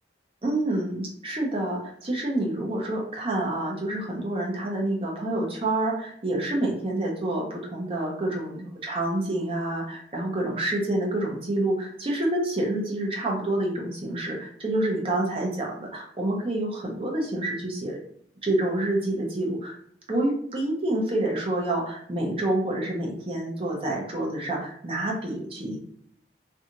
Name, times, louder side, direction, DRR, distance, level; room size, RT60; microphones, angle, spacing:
voice 1, 0.4-18.0 18.4-19.8 20.1-25.8, right 1 dB, 30° right, -1 dB, 0.6 m, -28 dB
2.5 x 2.3 x 2.8 m, 0.65 s
head